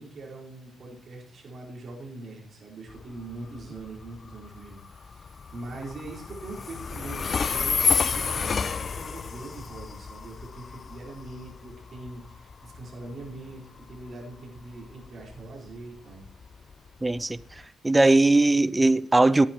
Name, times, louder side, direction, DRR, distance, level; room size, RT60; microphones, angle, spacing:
voice 1, 0.0-16.3, right 2 dB, 50° right, 5.0 m, -42 dB
Train, 2.9-17.6, left 5 dB, 45° left, 0.5 m, -31 dB
voice 2, 17.0-17.4 17.8-19.5, right 2 dB, 15° right, 0.6 m, -19 dB
18.0 x 9.2 x 3.2 m
hypercardioid pair, 45°, 0 cm